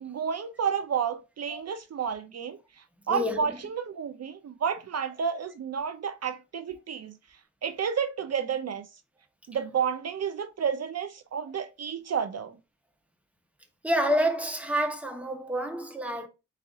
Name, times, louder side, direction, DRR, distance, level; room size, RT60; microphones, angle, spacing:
voice 1, 0.0-2.6 3.1-7.1 7.6-8.9 9.5-12.6, right 7 dB, 60° right, 0.5 m, -31 dB
voice 2, 3.1-3.6 13.8-16.3, equal, 5° right, 0.8 m, -28 dB
4.1 x 4.0 x 2.4 m
wide cardioid pair, 100°, 30 cm